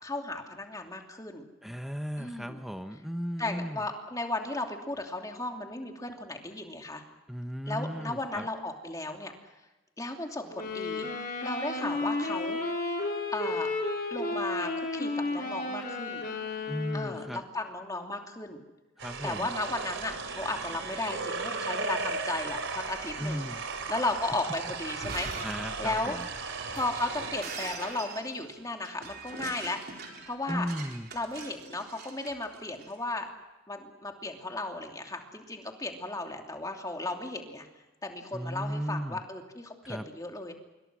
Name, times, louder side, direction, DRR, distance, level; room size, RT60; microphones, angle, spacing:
voice 1, 0.0-1.4 2.2-2.6 3.4-7.0 7.7-9.3 10.0-11.1 11.4-12.6 13.3-13.7 14.1-16.2 16.9-18.6 19.2-23.5 23.9-25.5 25.8-26.2 26.7-30.7 31.1-33.3 33.7-37.7 38.0-40.5, left 2 dB, 15° left, 3 dB, 2.8 m, -35 dB
voice 2, 1.6-3.8 7.3-8.5 16.7-17.4 19.0-19.5 23.2-23.7 25.4-26.3 30.5-31.1 38.3-39.2 39.8-40.1, equal, ahead, 7 dB, 1.0 m, -35 dB
sound 1, 10.5-17.3, left 2 dB, 45° left, 4.8 m, -33 dB
sound 2, 19.0-27.4, right 4 dB, 65° right, 3.7 m, -36 dB
Shatter, 24.9-32.9, right 4 dB, 50° right, 4.3 m, -43 dB
27.0 x 23.5 x 6.3 m, 1.1 s
head